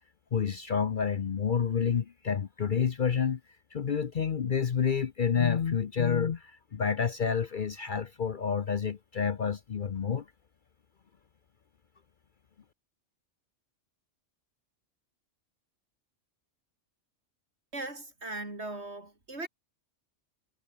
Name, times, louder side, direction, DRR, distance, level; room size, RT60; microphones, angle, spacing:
voice 1, 0.3-3.4 3.7-10.2, left 7 dB, 45° left, 0.8 m, -29 dB
voice 2, 17.7-19.5, right 2 dB, 60° right, 5.0 m, -39 dB
omnidirectional pair, 1.3 m